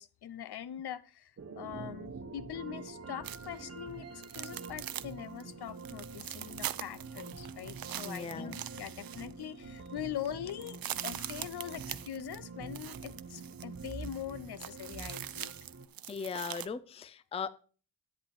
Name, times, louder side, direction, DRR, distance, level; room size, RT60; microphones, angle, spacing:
voice 1, 0.0-15.5, left 10 dB, 65° left, 0.7 m, -42 dB
sound 1, 1.4-15.9, right 4 dB, 35° right, 1.0 m, -46 dB
sound 2, 3.2-3.6 4.2-5.1 5.4-5.5 5.8-9.5 9.9-10.0 10.2-16.7, right 11 dB, 55° right, 0.6 m, -43 dB
voice 2, 8.0-8.6 16.1-17.6, left 5 dB, 15° left, 0.4 m, -38 dB
10.5 x 9.3 x 4.3 m
wide cardioid pair, 115°, 41 cm